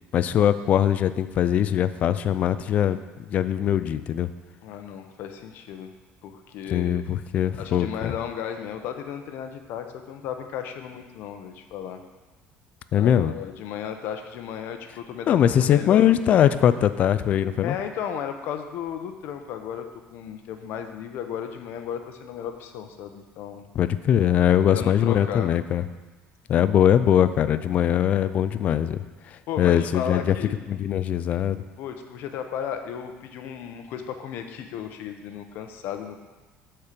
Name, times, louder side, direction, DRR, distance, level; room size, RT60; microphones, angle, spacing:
voice 1, 0.1-4.3 6.7-8.1 12.9-13.3 15.3-17.7 23.7-25.8 26.5-30.3 30.7-31.6, left 10 dB, 35° left, 12 dB, 0.3 m, -21 dB
voice 2, 4.6-5.9 6.2-7.0 7.6-12.0 13.0-16.0 17.6-23.7 24.6-25.5 29.5-30.6 31.8-36.2, left 8 dB, 55° left, 6 dB, 0.8 m, -34 dB
8.5 x 4.5 x 6.7 m, 1.2 s
cardioid pair, 170°, 4 cm